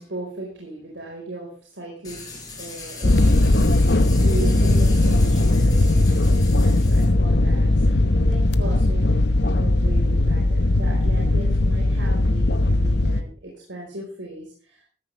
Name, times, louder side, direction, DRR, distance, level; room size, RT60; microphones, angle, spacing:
voice 1, 0.0-9.1 9.6-14.8, right 2 dB, 80° right, -2 dB, 4.6 m, -37 dB
sound 1, 2.0-7.0, left 3 dB, 20° left, 5.8 m, -39 dB
sound 2, 3.0-13.2, left 2 dB, 65° left, 1.0 m, -18 dB
14.5 x 14.0 x 3.4 m, 0.40 s
head